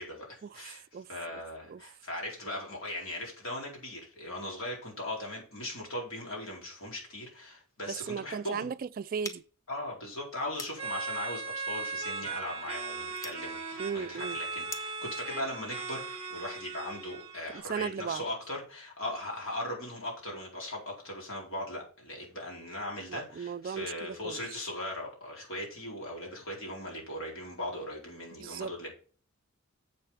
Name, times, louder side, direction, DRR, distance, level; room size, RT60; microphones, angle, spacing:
voice 1, 0.0-8.7 9.7-28.9, left 1 dB, 65° left, 4.3 m, -39 dB
voice 2, 7.9-9.4 13.8-14.4 17.5-18.2 23.1-24.4 28.4-28.7, right 6 dB, 40° right, 0.3 m, -36 dB
sound 1, 9.2-15.1, left 2 dB, 15° left, 0.9 m, -48 dB
sound 2, 10.8-17.6, right 4 dB, 25° right, 1.6 m, -38 dB
7.5 x 6.5 x 5.5 m
head